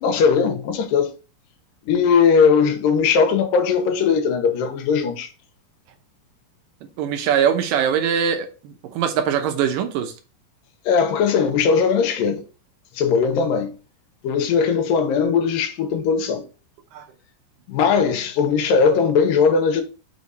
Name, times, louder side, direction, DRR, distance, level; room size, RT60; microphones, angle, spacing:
voice 1, 0.0-1.1 1.8-5.3 10.9-12.4 12.9-13.7 14.2-16.4 17.7-19.8, left 6 dB, 85° left, 2.7 m, -19 dB
voice 2, 7.0-10.1 16.9-17.1, right 8 dB, 80° right, 2.6 m, -22 dB
6.1 x 4.9 x 4.1 m
omnidirectional pair, 3.9 m